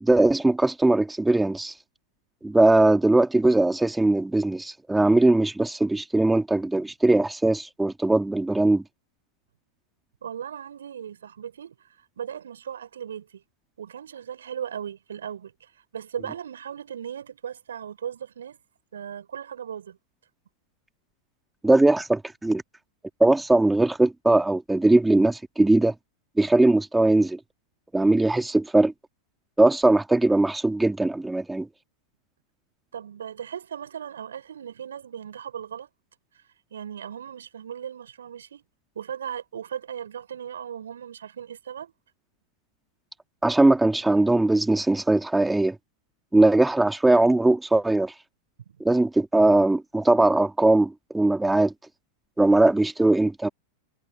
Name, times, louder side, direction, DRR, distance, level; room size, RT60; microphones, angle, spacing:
voice 1, 0.0-1.7 2.4-8.8 21.6-22.6 23.2-25.9 26.4-27.4 27.9-28.9 29.6-31.7 43.4-45.8 46.3-48.1 48.8-51.7 52.4-53.5, right 2 dB, 5° right, 2.3 m, -20 dB
voice 2, 10.2-11.7 12.2-13.3 13.8-15.5 15.9-18.6 18.9-20.0 32.9-35.9 36.7-38.6 38.9-41.9 48.7-48.8, right 8 dB, 70° right, 6.4 m, -37 dB
figure-of-eight pair, 90°, 0 cm